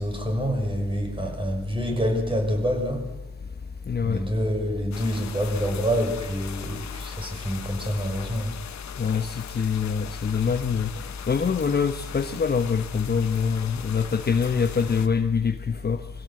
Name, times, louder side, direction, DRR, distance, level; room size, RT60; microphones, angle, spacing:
voice 1, 0.0-3.1 4.0-8.5, equal, 15° right, 3 dB, 6.3 m, -27 dB
voice 2, 3.9-4.2 9.0-16.0, left 6 dB, 35° left, 8 dB, 1.0 m, -25 dB
sound 1, 4.9-15.1, left 9 dB, 70° left, 1.4 m, -41 dB
24.0 x 16.5 x 7.7 m, 1.1 s
cardioid pair, 85°, 29 cm